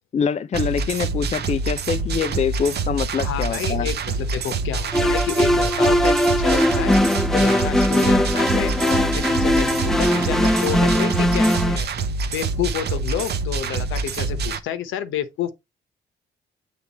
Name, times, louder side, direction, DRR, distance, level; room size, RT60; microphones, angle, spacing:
voice 1, 0.1-3.9, left 6 dB, 35° left, 0.5 m, -24 dB
sound 1, 0.5-14.6, right 4 dB, 55° right, 0.8 m, -26 dB
voice 2, 3.2-6.9 7.3-11.9 12.3-15.5, left 10 dB, 80° left, 0.9 m, -29 dB
sound 2, 4.9-11.8, equal, ahead, 0.7 m, -20 dB
7.2 x 3.4 x 4.2 m
cardioid pair, 90°, 20 cm